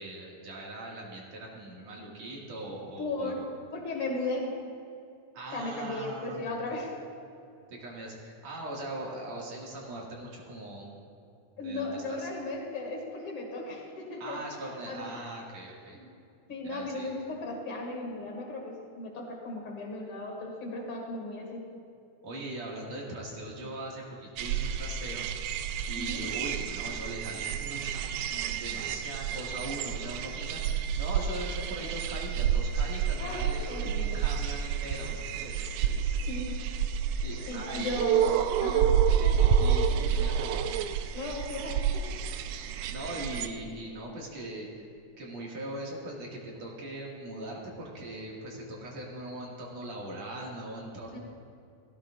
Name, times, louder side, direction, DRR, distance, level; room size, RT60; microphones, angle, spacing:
voice 1, 0.0-3.5 5.3-6.4 6.7-6.8 7.7-10.9 11.6-12.3 14.2-16.0 16.6-17.1 22.2-25.3 25.9-36.2 37.2-38.2 39.2-40.6 42.9-44.8 45.2-51.2, right 1 dB, 60° right, -3 dB, 3.1 m, -40 dB
voice 2, 3.0-3.4 3.7-4.6 5.5-6.9 11.6-14.4 14.9-15.3 15.9-16.1 16.5-21.7 25.9-26.2 33.2-34.2 35.9-36.6 37.5-38.9 41.1-42.2 51.1-51.2, left 2 dB, 45° left, -1 dB, 2.8 m, -36 dB
sound 1, 24.4-43.5, right 8 dB, 80° right, 1.7 m, -29 dB
17.5 x 15.0 x 2.5 m, 2.5 s
omnidirectional pair, 3.5 m